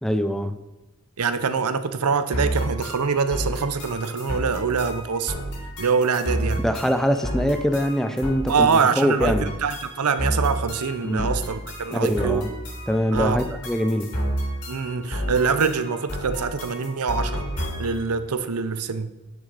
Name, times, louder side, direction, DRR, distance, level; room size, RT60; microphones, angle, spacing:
voice 1, 0.0-0.6 6.6-9.5 11.0-11.3 11.9-12.5 12.9-14.1, equal, ahead, 9 dB, 0.5 m, -23 dB
voice 2, 1.2-5.3 5.8-6.6 8.5-12.4 13.1-13.4 14.7-17.4 17.8-19.1, right 5 dB, 85° right, 12 dB, 0.7 m, -24 dB
sound 1, 2.3-18.1, equal, 80° left, 3.3 m, -31 dB
9.7 x 6.3 x 4.1 m, 1.1 s
head